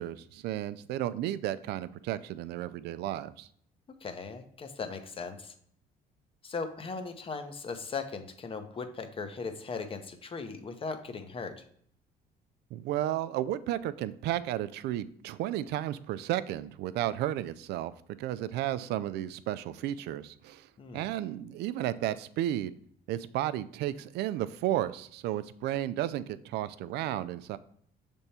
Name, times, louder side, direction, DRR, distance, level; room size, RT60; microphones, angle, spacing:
voice 1, 0.0-3.5 12.7-17.9 18.2-20.7 20.9-22.7 23.1-27.6, right 13 dB, 80° right, 15 dB, 0.4 m, -33 dB
voice 2, 4.0-5.5 6.4-11.6 20.8-21.1, left 4 dB, 30° left, 7 dB, 0.8 m, -38 dB
6.7 x 3.5 x 4.2 m, 0.64 s
cardioid pair, 110°, 17 cm